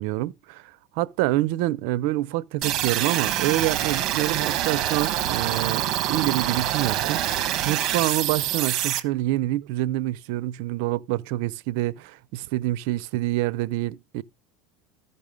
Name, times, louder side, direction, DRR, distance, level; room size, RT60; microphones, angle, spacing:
voice 1, 0.0-14.2, right 16 dB, 70° right, 0.5 m, -27 dB
sound 1, 2.6-9.0, right 12 dB, 50° right, 1.2 m, -25 dB
14.0 x 5.5 x 5.1 m
supercardioid pair, 125°, 0 cm